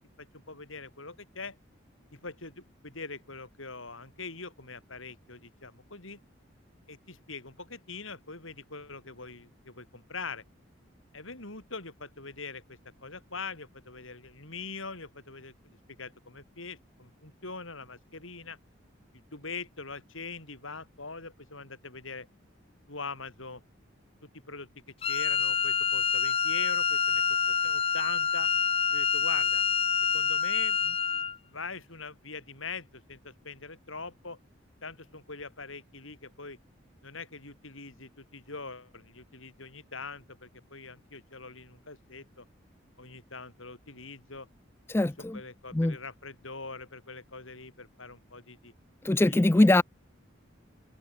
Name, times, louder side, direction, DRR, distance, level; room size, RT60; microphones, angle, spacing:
voice 1, 0.0-1.6 2.1-6.2 6.9-10.4 11.1-18.6 19.3-22.3 22.9-23.6 24.2-24.7 25.0-28.5 28.9-29.6 30.1-34.4 34.8-36.6 37.0-42.4 43.0-44.5 45.0-48.7 49.2-49.6, left 4 dB, 80° left, 6.0 m, -43 dB
Wind instrument woodwind instrument, 25.0-31.4, left 6 dB, 25° left, 1.2 m, -27 dB
voice 2, 44.9-45.4 45.7-46.0 49.0-49.8, left 1 dB, 10° left, 0.3 m, -22 dB
head